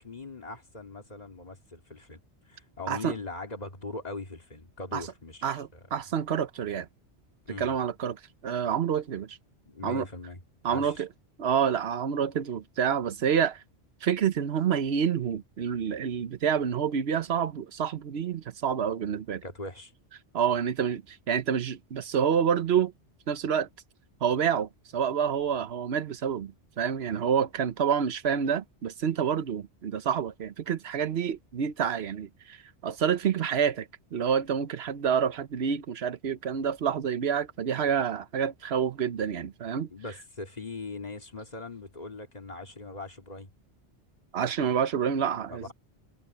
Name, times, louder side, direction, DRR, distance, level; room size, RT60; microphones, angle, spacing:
voice 1, 0.0-2.2 2.5-5.8 7.5-7.7 9.6-10.4 10.7-11.0 19.4-19.9 39.9-43.5 45.5-45.7, left 3 dB, 35° left, 2.6 m, -40 dB
voice 2, 5.4-6.9 7.6-8.2 8.4-9.4 9.8-10.1 10.6-11.1 11.4-13.6 14.0-19.4 20.3-22.9 23.3-23.7 24.2-32.6 32.8-39.9 44.3-45.7, right 8 dB, 65° right, 1.1 m, -28 dB
omnidirectional pair, 1.2 m